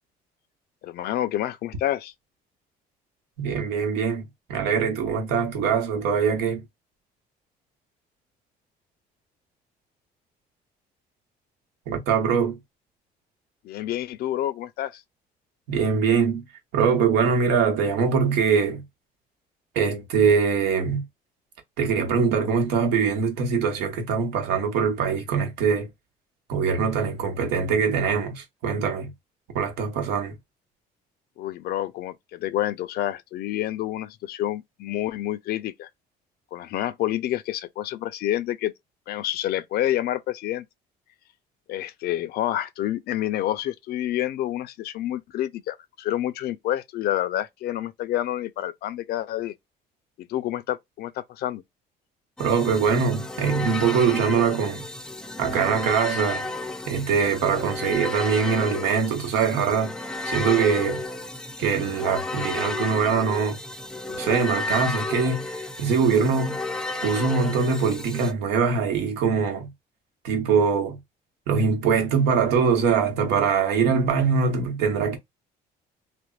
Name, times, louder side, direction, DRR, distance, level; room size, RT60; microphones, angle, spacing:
voice 1, 0.8-2.1 13.6-15.0 31.4-35.9 36.5-38.7 39.1-40.7 41.7-49.5 50.2-51.6, left 13 dB, 70° left, 0.5 m, -28 dB
voice 2, 3.4-4.2 4.5-6.6 11.9-12.6 15.7-16.4 16.7-18.8 19.7-21.1 21.8-25.9 26.5-29.1 29.5-30.4 52.4-54.9 55.4-56.5 56.9-59.9 60.3-61.0 61.6-63.6 64.2-66.6 67.0-69.7 70.2-71.0 71.5-75.2, right 6 dB, 90° right, 1.0 m, -23 dB
sound 1, 52.4-68.3, left 2 dB, 5° left, 0.4 m, -32 dB
3.3 x 2.0 x 2.4 m
cardioid pair, 110°, 17 cm